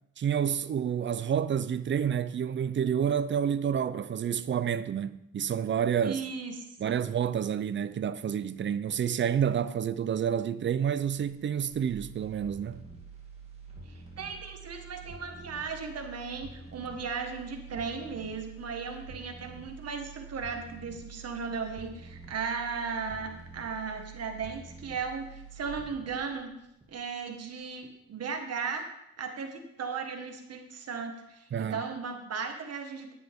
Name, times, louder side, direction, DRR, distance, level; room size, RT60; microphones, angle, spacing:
voice 1, 0.2-6.2 6.8-12.8 31.5-31.8, right 8 dB, 40° right, 0.6 m, -29 dB
voice 2, 6.0-7.1 13.9-26.5 26.9-28.8 29.2-33.1, right 5 dB, 55° right, 1.8 m, -36 dB
leadout-groove, 11.2-27.2 27.6-27.7, right 4 dB, 20° right, 3.0 m, -47 dB
11.0 x 9.1 x 3.7 m
cardioid pair, 90°, 30 cm